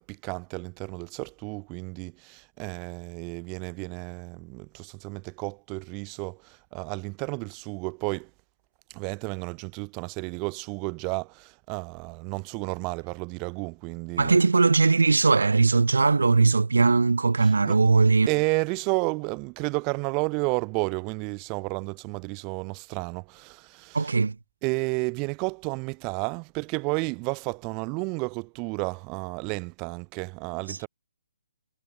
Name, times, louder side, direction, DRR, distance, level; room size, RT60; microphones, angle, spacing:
voice 1, 0.0-8.3 8.9-14.4 17.4-17.8 18.3-24.1 24.6-30.9, right 32 dB, 25° right, 1.2 m, -32 dB
voice 2, 14.2-18.3 23.9-24.3 30.7-30.9, right 4 dB, 85° right, 0.4 m, -20 dB
hypercardioid pair, 145°, 0 cm